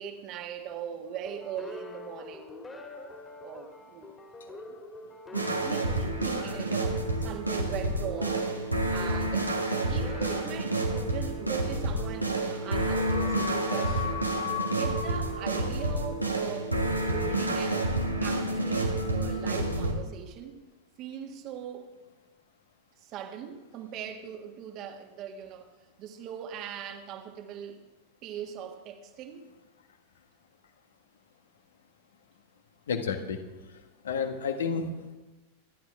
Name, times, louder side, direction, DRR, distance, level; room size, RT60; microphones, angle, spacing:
voice 1, 0.0-2.6 3.4-4.1 4.5-4.8 5.3-14.2 14.7-16.7 17.0-17.9 18.2-20.6 21.0-21.9 23.0-25.7 26.0-27.8 28.2-29.5, right 8 dB, 40° right, 1.8 m, -40 dB
sound 1, 1.3-16.6, left 2 dB, 15° left, 2.5 m, -46 dB
sound 2, 5.3-19.9, right 1 dB, 90° right, 1.8 m, -29 dB
voice 2, 32.9-33.4 34.0-35.1, left 5 dB, 65° left, 1.6 m, -30 dB
26.5 x 11.5 x 3.6 m
figure-of-eight pair, 90°, 0 cm